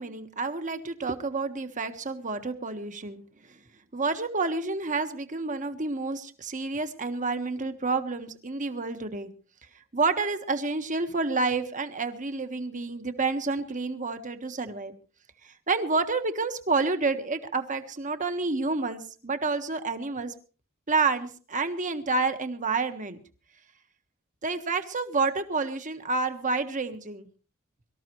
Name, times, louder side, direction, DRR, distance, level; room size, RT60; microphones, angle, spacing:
voice 1, 0.0-3.6 3.9-9.3 9.9-14.9 15.4-20.3 20.9-23.2 24.4-27.3, right 3 dB, 40° right, 8 dB, 1.5 m, -29 dB
24.0 x 13.5 x 3.1 m, 0.39 s
head